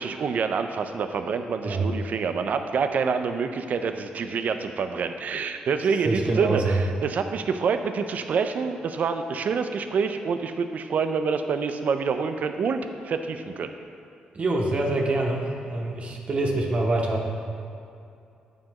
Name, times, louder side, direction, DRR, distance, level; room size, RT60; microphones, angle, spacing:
voice 1, 0.0-13.7, right 5 dB, 60° right, 8 dB, 0.4 m, -27 dB
voice 2, 6.0-6.7 14.3-17.3, right 2 dB, 45° right, 0 dB, 0.9 m, -25 dB
7.6 x 5.2 x 2.9 m, 2.5 s
cardioid pair, 70°, 3 cm